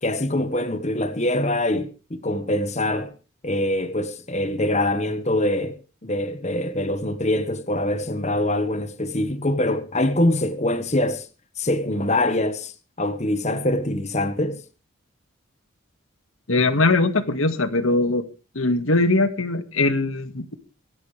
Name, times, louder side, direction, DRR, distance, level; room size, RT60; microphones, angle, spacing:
voice 1, 0.0-3.1 3.4-11.3 11.6-12.7 13.0-14.6, left 1 dB, 35° left, 1.4 m, -24 dB
voice 2, 16.5-18.2 18.6-20.5, left 2 dB, 80° left, 1.9 m, -21 dB
25.0 x 11.5 x 3.4 m
head